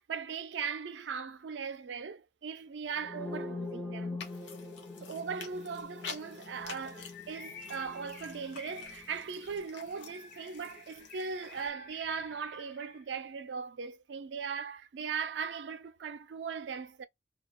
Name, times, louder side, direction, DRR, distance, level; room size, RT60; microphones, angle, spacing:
voice 1, 0.0-4.2 5.0-17.1, right 6 dB, 75° right, 0.4 m, -39 dB
sound 1, 3.0-10.8, left 2 dB, 10° left, 0.4 m, -44 dB
sound 2, 4.2-11.7, left 6 dB, 80° left, 0.6 m, -49 dB
Bird, 6.9-13.2, left 4 dB, 50° left, 0.9 m, -52 dB
2.3 x 2.1 x 2.9 m
head